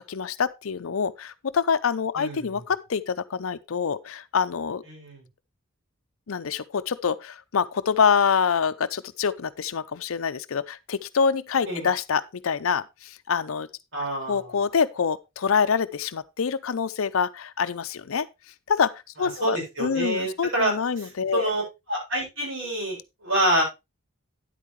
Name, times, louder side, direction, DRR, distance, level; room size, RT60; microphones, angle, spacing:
voice 1, 0.0-4.8 6.3-13.7 14.3-18.3 18.7-18.9 19.2-21.5, left 6 dB, 80° left, 0.6 m, -26 dB
voice 2, 2.2-2.7 4.8-5.3 11.6-11.9 13.9-14.6 19.2-21.6 21.9-23.6, right 1 dB, 65° right, 7.4 m, -27 dB
10.0 x 8.5 x 3.1 m
head